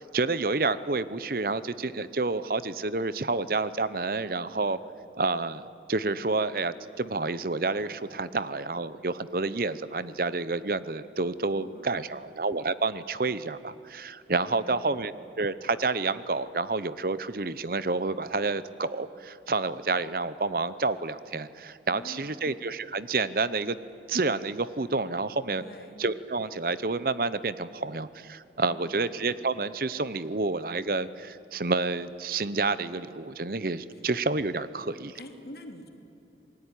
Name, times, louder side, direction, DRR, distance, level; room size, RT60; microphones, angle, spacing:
voice 1, 0.0-4.8 5.2-23.8 24.1-25.6 26.0-35.1, right 3 dB, 55° right, 15 dB, 0.8 m, -29 dB
voice 2, 11.5-12.2 14.5-15.0 21.9-22.5 25.6-26.0 28.7-29.1 33.9-34.0 35.1-35.9, left 1 dB, 60° left, 5 dB, 2.9 m, -47 dB
27.5 x 19.5 x 10.0 m, 2.8 s
head